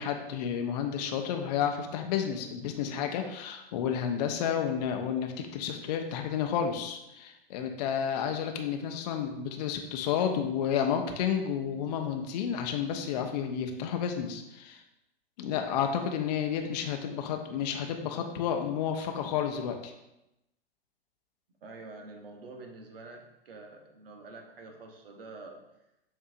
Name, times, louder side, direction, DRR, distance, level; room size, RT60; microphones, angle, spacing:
voice 1, 0.0-14.8 15.4-19.9, left 8 dB, 45° left, 5 dB, 0.5 m, -31 dB
voice 2, 21.6-25.6, right 3 dB, 65° right, 2 dB, 1.0 m, -47 dB
7.3 x 2.7 x 2.5 m, 0.89 s
figure-of-eight pair, 110°, 30 cm